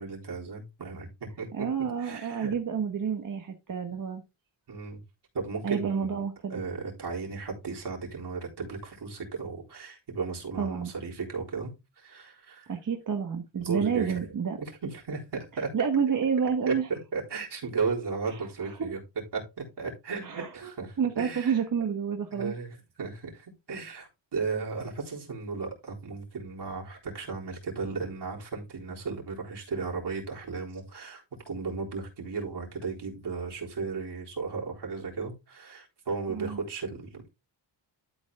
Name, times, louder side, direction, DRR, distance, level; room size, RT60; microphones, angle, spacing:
voice 1, 0.0-1.7 2.0-2.5 4.7-5.0 5.3-6.2 6.5-12.7 13.6-14.3 14.6-15.7 16.7-19.0 19.3-21.6 22.3-37.3, right 4 dB, 60° right, 3.9 m, -35 dB
voice 2, 1.5-4.2 5.6-6.6 10.6-10.9 12.7-14.6 15.7-16.9 18.6-18.9 20.2-20.7 21.0-22.5 36.3-36.6, right 7 dB, 45° right, 1.2 m, -29 dB
12.5 x 4.4 x 3.6 m
wide cardioid pair, 130°, 46 cm